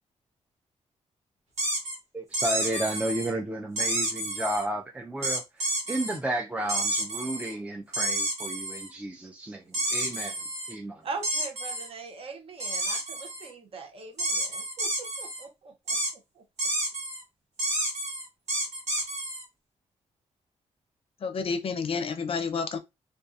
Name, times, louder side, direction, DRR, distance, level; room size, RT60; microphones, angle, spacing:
sound 1, 1.6-2.0 2.3-3.3 3.8-4.6 5.2-6.2 6.7-7.5 7.9-8.9 9.7-10.7 11.2-11.9 12.6-13.5 14.2-15.4 15.9-16.1 16.6-17.2 17.6-19.4, right 1 dB, 70° right, 1.1 m, -30 dB
voice 1, 2.1-5.4 5.9-9.6 9.9-10.3 10.7-11.0, right 1 dB, 10° right, 0.3 m, -32 dB
voice 2, 11.0-16.4, right 4 dB, 50° right, 0.7 m, -41 dB
voice 3, 21.2-22.8, left 5 dB, 50° left, 0.5 m, -30 dB
2.5 x 2.3 x 2.4 m
cardioid pair, 110°, 12 cm